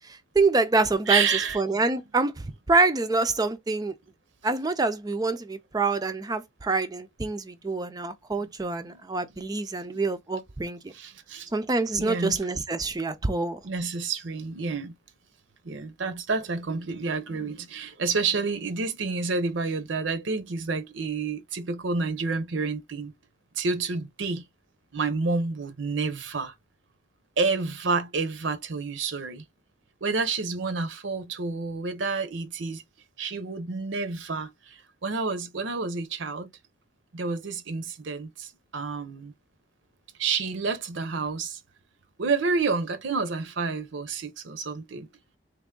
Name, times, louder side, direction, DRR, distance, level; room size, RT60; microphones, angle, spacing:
voice 1, 0.3-1.3 1.5-3.9 4.4-10.8 11.5-13.6, right 3 dB, 20° right, 0.4 m, -26 dB
voice 2, 1.1-1.6 8.8-9.0 10.9-11.5 12.0-12.4 13.6-15.0 15.6-23.1 23.6-24.4 24.9-26.5 27.4-29.4 30.0-32.8 33.2-36.5 37.1-39.3 40.2-41.6 42.2-45.1, right 4 dB, 70° right, 0.7 m, -29 dB
3.4 x 3.0 x 3.7 m
head